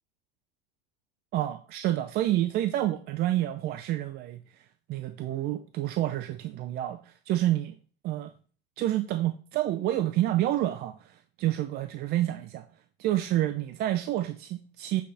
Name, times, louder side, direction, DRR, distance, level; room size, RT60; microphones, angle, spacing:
voice 1, 1.3-4.4 4.9-7.7 8.0-8.3 8.8-12.7 13.0-15.0, right 13 dB, 35° right, 0.4 m, -28 dB
7.6 x 4.0 x 3.3 m
hypercardioid pair, 110°, 31 cm